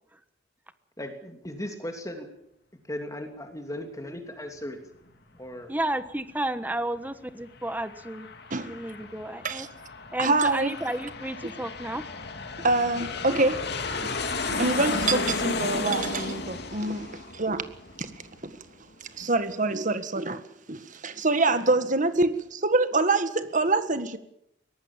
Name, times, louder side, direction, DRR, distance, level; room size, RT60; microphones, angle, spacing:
voice 1, 1.0-2.3 2.9-4.8 5.3-5.7, left 1 dB, 20° left, 2.8 m, -37 dB
voice 2, 5.7-8.3 8.7-9.7 10.1-12.0, right 1 dB, 10° right, 1.3 m, -32 dB
Aircraft, 7.4-18.6, left 3 dB, 60° left, 2.8 m, -34 dB
voice 3, 10.2-10.8 12.6-13.7 14.0-14.1 14.5-17.7 18.0-18.1 19.1-20.4 20.7-24.2, right 3 dB, 45° right, 1.8 m, -25 dB
23.0 x 19.0 x 7.4 m
head